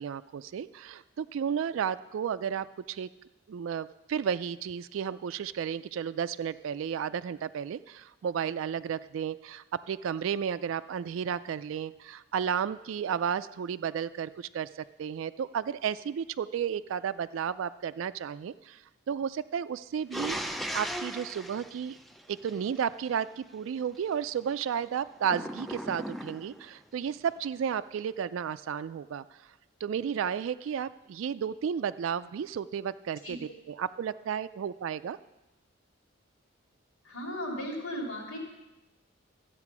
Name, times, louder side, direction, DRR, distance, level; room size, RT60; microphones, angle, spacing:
voice 1, 0.0-3.1 3.5-14.7 15.0-18.8 19.1-22.0 22.3-29.2 29.8-35.2, right 8 dB, 75° right, 13 dB, 0.3 m, -33 dB
sound 1, 20.1-22.8 25.2-26.7, equal, ahead, 0.3 m, -37 dB
voice 2, 37.0-38.4, equal, 85° left, 0 dB, 2.8 m, -36 dB
12.5 x 8.2 x 6.0 m, 1.0 s
head